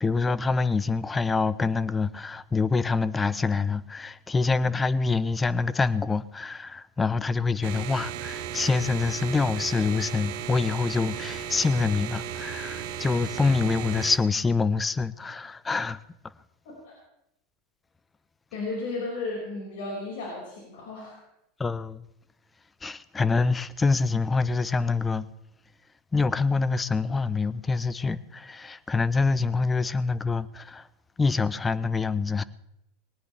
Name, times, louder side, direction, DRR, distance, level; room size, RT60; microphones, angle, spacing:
voice 1, 0.0-16.0 21.6-22.0 22.8-25.3 26.1-30.9 31.2-32.4, left 4 dB, 20° left, 0.7 m, -26 dB
sound 1, 7.6-14.2, right 9 dB, 65° right, 1.3 m, -35 dB
voice 2, 18.5-21.2, left 3 dB, 70° left, 5.8 m, -34 dB
20.5 x 19.0 x 3.5 m
hypercardioid pair, 85°, 0 cm